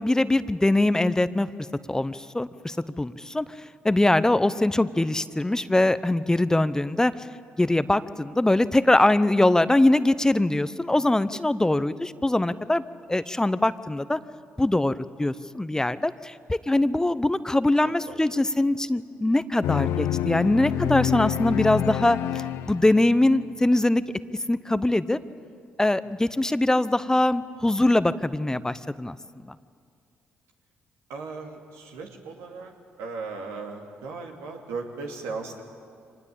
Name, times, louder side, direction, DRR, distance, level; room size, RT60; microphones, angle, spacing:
voice 1, 0.0-1.5 1.9-3.4 3.8-7.3 7.6-12.8 13.1-14.2 14.6-24.0 24.5-25.2 25.8-29.2 29.4-29.6, left 1 dB, 15° left, 15 dB, 0.8 m, -22 dB
voice 2, 17.8-18.5 31.1-32.7 33.0-35.6, right 4 dB, 85° right, 2 dB, 2.7 m, -37 dB
sound 1, 19.6-23.4, left 11 dB, 80° left, 0.8 m, -28 dB
24.5 x 20.0 x 8.6 m, 2.3 s
supercardioid pair, 55°, 5 cm